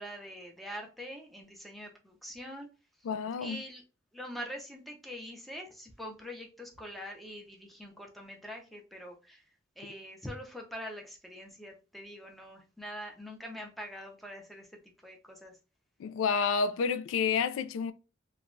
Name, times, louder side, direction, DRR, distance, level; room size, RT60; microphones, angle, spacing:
voice 1, 0.0-2.7 3.4-3.8 4.1-9.4 9.8-14.7 15.0-15.6, equal, ahead, 0.6 m, -44 dB
voice 2, 3.0-3.6 16.0-17.9, left 5 dB, 90° left, 0.3 m, -29 dB
3.1 x 2.2 x 2.5 m
head